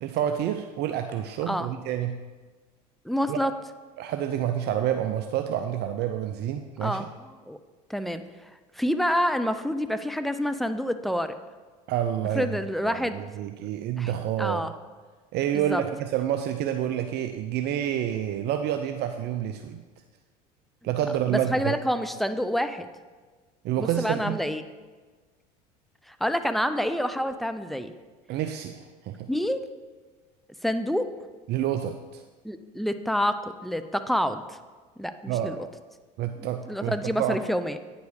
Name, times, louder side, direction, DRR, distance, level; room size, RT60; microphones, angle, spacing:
voice 1, 0.0-2.2 3.3-3.4 4.0-7.0 11.9-12.6 12.8-14.7 15.3-19.8 20.8-21.8 23.6-24.4 28.3-29.3 31.5-32.2 35.3-35.6 36.2-37.4, right 10 dB, 55° right, 7 dB, 0.5 m, -28 dB
voice 2, 3.0-3.5 6.8-7.6 7.9-8.2 8.8-11.4 12.3-13.2 14.0-14.1 14.4-14.7 15.5-15.8 21.3-22.9 23.8-24.6 26.1-27.9 29.3-29.6 30.6-31.1 32.4-33.4 33.6-34.6 35.0-35.6 36.7-37.8, equal, ahead, 10 dB, 0.5 m, -27 dB
9.2 x 5.2 x 4.8 m, 1.3 s
hypercardioid pair, 90°, 21 cm